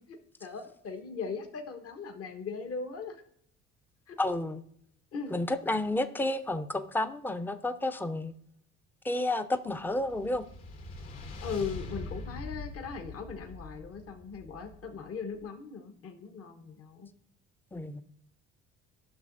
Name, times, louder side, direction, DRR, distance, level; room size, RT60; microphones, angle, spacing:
voice 1, 0.1-3.2 4.1-4.2 5.1-5.4 11.4-17.1, left 5 dB, 45° left, 1.2 m, -39 dB
voice 2, 4.2-4.6 5.3-8.3 9.0-10.4 17.7-18.0, left 1 dB, 5° left, 0.5 m, -31 dB
sound 1, 9.8-15.2, left 3 dB, 75° left, 3.1 m, -43 dB
11.5 x 6.3 x 2.6 m
supercardioid pair, 70°, 32 cm